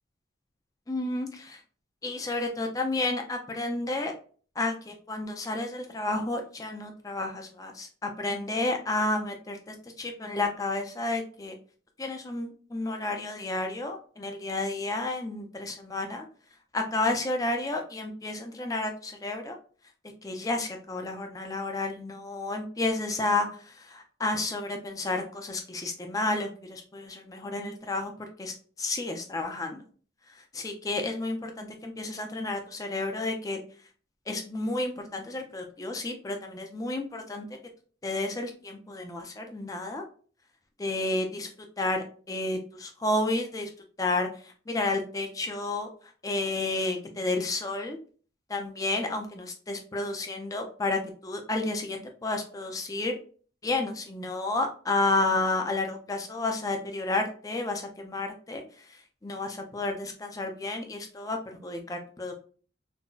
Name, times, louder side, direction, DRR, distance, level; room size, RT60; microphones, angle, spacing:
voice 1, 0.9-1.6 2.0-4.1 4.6-11.5 12.0-16.2 16.7-19.6 20.2-28.1 28.4-29.8 30.4-33.6 34.3-37.5 38.0-40.0 40.8-43.7 44.0-45.9 46.2-48.0 48.5-53.1 53.6-62.4, left 2 dB, 20° left, 4 dB, 0.4 m, -31 dB
3.8 x 2.1 x 2.3 m, 0.41 s
head